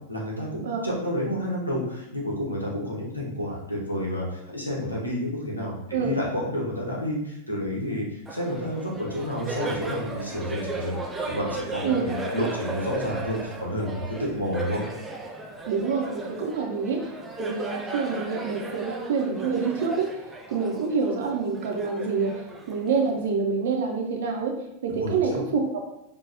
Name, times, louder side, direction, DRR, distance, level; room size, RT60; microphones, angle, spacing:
voice 1, 0.1-10.9 11.3-14.8 25.0-25.4, equal, 85° left, -4 dB, 0.9 m, -30 dB
Laughter, 8.3-23.3, right 3 dB, 10° right, 0.5 m, -36 dB
voice 2, 15.7-17.1 17.4-20.1 20.5-22.4 22.7-24.6 24.8-25.8, right 5 dB, 55° right, 2 dB, 0.6 m, -26 dB
4.9 x 2.3 x 2.5 m, 0.83 s
figure-of-eight pair, 90°, 0 cm